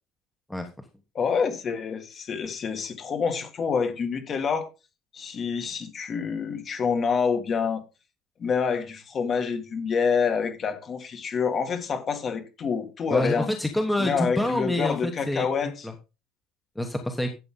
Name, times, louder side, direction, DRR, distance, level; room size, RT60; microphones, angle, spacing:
voice 1, 1.1-4.7 5.1-7.8 8.4-13.5 14.0-15.9, left 6 dB, 30° left, 2.0 m, -27 dB
voice 2, 13.1-15.9 16.8-17.3, left 1 dB, 5° left, 1.2 m, -27 dB
12.5 x 7.9 x 3.8 m
cardioid pair, 155°, 0 cm